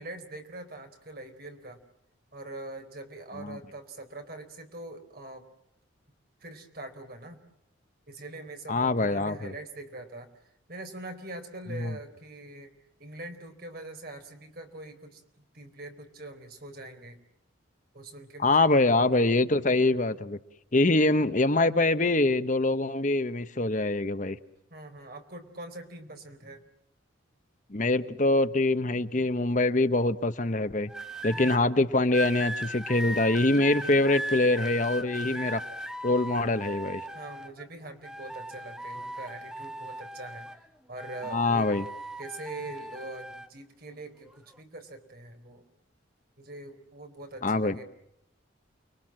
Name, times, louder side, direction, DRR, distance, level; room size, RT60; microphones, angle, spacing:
voice 1, 0.0-1.8 2.3-5.4 6.4-7.4 8.1-10.3 10.7-12.7 13.0-15.2 15.5-17.2 17.9-18.7 20.9-21.1 24.7-26.6 31.3-31.6 35.2-35.6 37.1-40.5 40.9-41.7 42.2-45.6 46.4-47.8, right 2 dB, 50° right, 6 dB, 4.2 m, -43 dB
voice 2, 8.7-9.5 11.7-12.0 18.4-20.4 20.7-24.4 27.7-30.9 31.2-35.6 36.0-37.0 41.3-41.8 47.4-47.8, left 2 dB, 40° left, 11 dB, 1.0 m, -24 dB
sound 1, 30.9-31.6 32.1-37.6 38.0-40.7 41.0-43.5 44.3-44.5, right 1 dB, 5° right, 1.0 m, -38 dB
30.0 x 22.5 x 7.6 m, 0.77 s
head